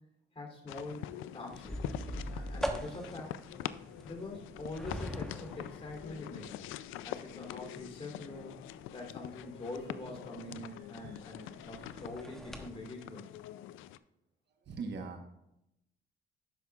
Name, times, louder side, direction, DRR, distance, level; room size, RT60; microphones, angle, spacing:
voice 1, 0.3-1.8 2.1-3.4 4.0-6.6 7.0-8.5 8.9-13.4, left 2 dB, 30° left, 0 dB, 3.1 m, -44 dB
sound 1, 0.7-14.0, left 12 dB, 90° left, 0.4 m, -45 dB
sound 2, 1.5-12.7, equal, ahead, 1.1 m, -44 dB
voice 2, 10.7-12.0 14.6-15.3, right 4 dB, 60° right, 4 dB, 1.2 m, -44 dB
11.5 x 8.3 x 2.4 m, 0.84 s
cardioid pair, 90°, 20 cm